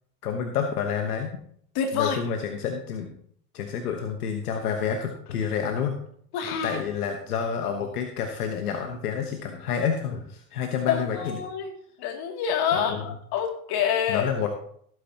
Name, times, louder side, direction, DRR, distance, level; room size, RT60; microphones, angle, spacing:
voice 1, 0.2-1.4 1.9-3.2 3.5-6.0 6.6-11.4 12.7-13.0 14.1-14.5, left 7 dB, 85° left, 5 dB, 1.3 m, -29 dB
voice 2, 1.7-2.2 6.3-6.8 10.9-11.7 12.0-14.3, left 7 dB, 55° left, 3 dB, 2.7 m, -27 dB
16.5 x 9.3 x 2.9 m, 0.63 s
hypercardioid pair, 75°, 44 cm